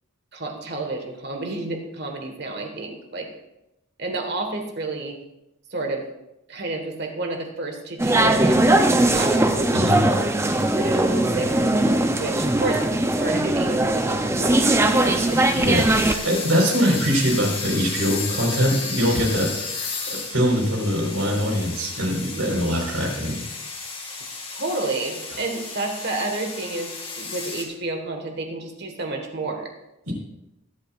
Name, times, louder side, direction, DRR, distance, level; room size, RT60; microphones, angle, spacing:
voice 1, 0.3-3.3 4.0-5.2 5.7-6.1 6.5-9.9 10.5-12.9 13.2-15.5 22.3-22.7 24.0-24.2 24.5-26.9 27.2-29.7, right 2 dB, 50° right, 3 dB, 1.6 m, -30 dB
sound 1, 8.0-16.1, right 1 dB, 10° right, 0.6 m, -20 dB
sound 2, 14.9-27.6, left 4 dB, 25° left, 1.8 m, -33 dB
voice 2, 15.6-19.5 19.8-23.4 30.0-30.1, equal, 85° right, -1 dB, 4.4 m, -22 dB
22.0 x 8.4 x 2.5 m, 0.91 s
head